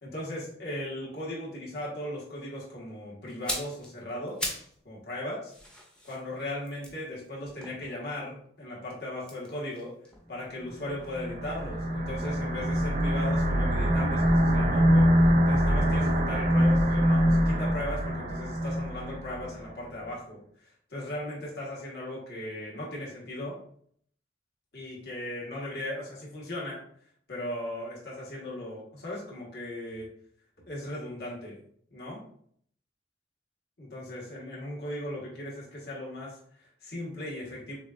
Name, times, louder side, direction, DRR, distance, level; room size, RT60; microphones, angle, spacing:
voice 1, 0.0-4.5 4.8-5.5 6.0-9.9 10.3-20.4 20.9-23.6 24.7-26.8 27.3-30.1 30.6-31.6 31.9-32.2 33.8-37.8, left 1 dB, 60° left, -4 dB, 1.4 m, -37 dB
sound 1, 3.3-4.8 5.1-8.4 9.2-11.2 11.5-11.7, left 1 dB, 5° left, 0.7 m, -40 dB
sound 2, 10.9-19.5, equal, 40° right, 0.6 m, -24 dB
6.3 x 2.4 x 2.5 m, 0.64 s
head